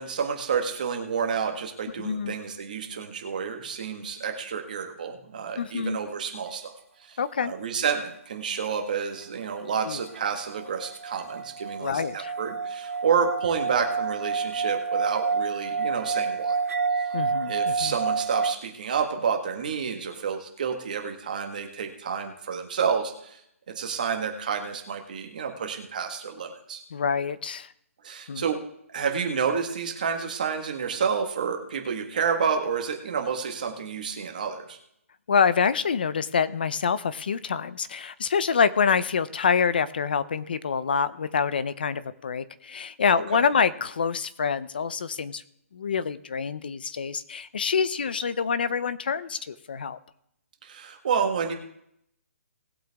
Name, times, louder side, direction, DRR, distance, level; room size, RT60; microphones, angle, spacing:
voice 1, 0.0-6.7 7.0-16.6 17.5-23.4 23.7-26.8 28.0-28.6 28.9-34.8 43.3-43.4 50.6-51.5, right 6 dB, 35° right, 4 dB, 1.7 m, -29 dB
voice 2, 2.0-2.3 5.6-6.0 7.2-7.5 9.8-10.0 11.8-12.3 17.1-17.9 26.9-27.7 28.3-28.4 35.3-45.4 45.7-50.0, left 6 dB, 40° left, 15 dB, 0.6 m, -26 dB
sound 1, 10.2-18.6, right 5 dB, 70° right, 0.5 m, -29 dB
19.5 x 7.8 x 3.5 m, 0.73 s
hypercardioid pair, 180°, 8 cm